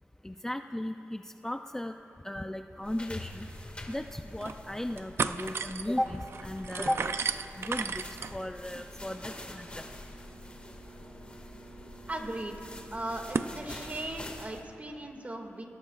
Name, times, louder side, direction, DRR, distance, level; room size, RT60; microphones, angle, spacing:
voice 1, 0.2-1.9 2.2-3.5 3.9-7.2 7.6-9.9, left 1 dB, 10° left, 6 dB, 0.5 m, -36 dB
sound 1, 2.8-14.6, left 2 dB, 25° left, 1.9 m, -46 dB
sound 2, 3.5-3.6 4.1-4.6 4.9-13.5, right 5 dB, 70° right, 0.5 m, -37 dB
voice 2, 12.1-12.7 12.9-15.6, right 1 dB, 35° right, 3 dB, 2.1 m, -38 dB
28.5 x 20.5 x 2.4 m, 2.9 s
wide cardioid pair, 80°, 4 cm